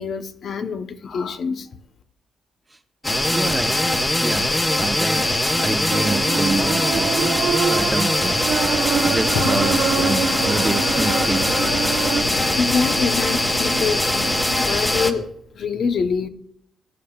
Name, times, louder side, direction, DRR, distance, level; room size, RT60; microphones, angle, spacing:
voice 1, 0.0-1.7 12.2-15.3 15.5-16.3, left 5 dB, 55° left, 0.9 m, -25 dB
sound 1, 3.0-15.1, left 1 dB, 15° left, 1.3 m, -21 dB
voice 2, 3.3-3.7 4.2-5.3 5.6-7.1 7.7-8.4 9.0-11.5, right 2 dB, 15° right, 1.0 m, -27 dB
sound 2, 5.9-12.2, right 6 dB, 80° right, 1.4 m, -25 dB
sound 3, 9.0-14.7, left 8 dB, 85° left, 0.6 m, -34 dB
22.0 x 9.8 x 2.4 m
cardioid pair, 120°, 0 cm